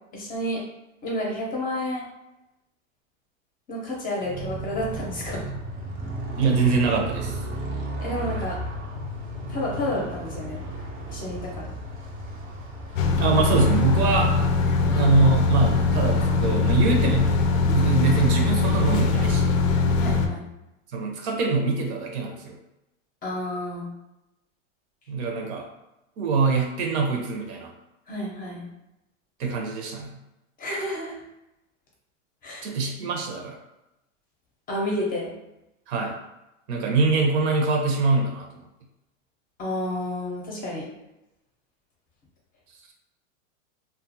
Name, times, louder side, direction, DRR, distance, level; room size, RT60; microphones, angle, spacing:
voice 1, 0.1-0.6 1.0-2.0 3.7-5.5 8.0-8.6 9.5-10.6 11.1-11.7 20.0-20.4 23.2-23.9 28.1-28.7 30.6-31.1 32.4-32.7 34.7-35.3 39.6-40.9, left 1 dB, 20° left, -2 dB, 0.7 m, -30 dB
Motorcycle, 4.2-14.9, right 1 dB, 20° right, 0.5 m, -34 dB
voice 2, 6.4-7.4 13.2-14.3 14.9-17.4 17.7-19.6 20.9-22.5 25.1-25.6 26.2-27.7 29.4-30.2 32.6-33.6 35.9-36.1 36.7-38.5, right 4 dB, 60° right, 1 dB, 0.8 m, -23 dB
sound 1, 13.0-20.3, left 4 dB, 85° left, 0.5 m, -22 dB
2.5 x 2.4 x 2.6 m, 0.92 s
hypercardioid pair, 125°, 38 cm